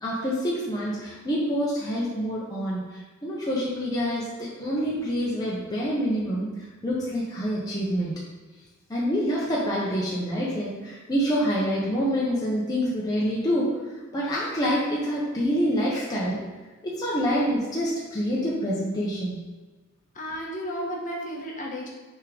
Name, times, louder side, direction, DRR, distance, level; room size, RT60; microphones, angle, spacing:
voice 1, 0.0-2.8 3.2-8.1 8.9-13.7 14.1-16.4 16.8-19.3, equal, 20° left, -6 dB, 1.0 m, -26 dB
voice 2, 20.1-21.9, equal, 40° left, -2 dB, 1.3 m, -33 dB
6.4 x 3.7 x 4.9 m, 1.3 s
head